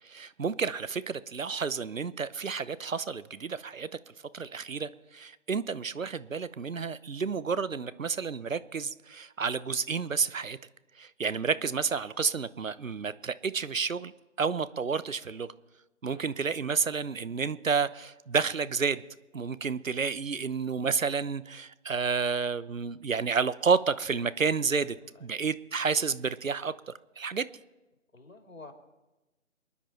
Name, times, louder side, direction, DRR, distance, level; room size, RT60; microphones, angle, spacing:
voice 1, 0.0-10.6 10.9-14.1 14.4-15.5 16.0-19.0 19.3-24.9 25.2-27.5, right 5 dB, 75° right, 16 dB, 0.9 m, -30 dB
voice 2, 16.0-16.4 24.7-25.3 28.1-28.7, left 3 dB, 75° left, 3 dB, 3.3 m, -51 dB
28.0 x 10.0 x 4.4 m, 1.1 s
figure-of-eight pair, 165°, 40 cm